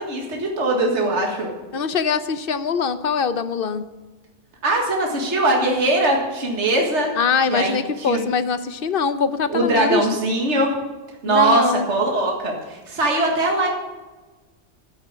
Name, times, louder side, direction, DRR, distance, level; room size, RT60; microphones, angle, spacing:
voice 1, 0.0-1.5 4.6-7.1 7.5-8.2 9.5-10.7 11.2-13.7, right 2 dB, 70° right, 0 dB, 2.2 m, -21 dB
voice 2, 1.7-3.8 7.2-10.1 11.3-11.9, left 5 dB, 55° left, 12 dB, 0.9 m, -23 dB
12.0 x 8.8 x 6.7 m, 1.2 s
omnidirectional pair, 1.2 m